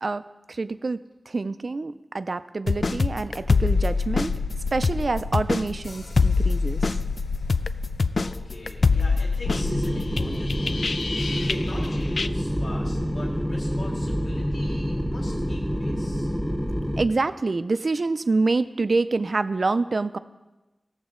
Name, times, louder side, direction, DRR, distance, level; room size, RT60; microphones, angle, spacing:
voice 1, 0.0-4.3 4.7-6.9 17.0-20.2, right 3 dB, 65° right, 12 dB, 0.4 m, -26 dB
sound 1, 2.7-11.9 12.2-12.3, left 4 dB, 70° left, 0.3 m, -25 dB
voice 2, 8.2-10.9 11.5-16.3, left 1 dB, 90° left, -3 dB, 2.0 m, -40 dB
sound 2, 9.5-17.0, equal, 5° left, 1.0 m, -27 dB
17.5 x 7.0 x 3.7 m, 1.1 s
wide cardioid pair, 70°, 0 cm